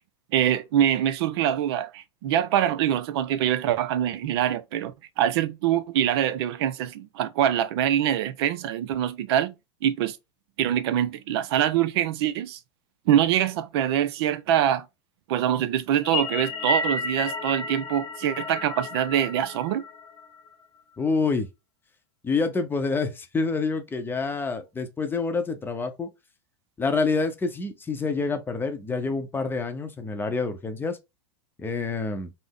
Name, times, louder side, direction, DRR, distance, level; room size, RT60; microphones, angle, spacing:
voice 1, 0.3-9.5 9.8-10.2 10.6-12.6 13.1-14.9 15.3-19.8, right 10 dB, 60° right, 0.4 m, -24 dB
sound 1, 15.9-20.5, left 3 dB, 40° left, 0.9 m, -31 dB
voice 2, 21.0-21.5 22.2-26.1 26.8-31.0 31.6-32.3, left 4 dB, 15° left, 0.6 m, -27 dB
3.4 x 2.0 x 3.6 m
hypercardioid pair, 105°, 15 cm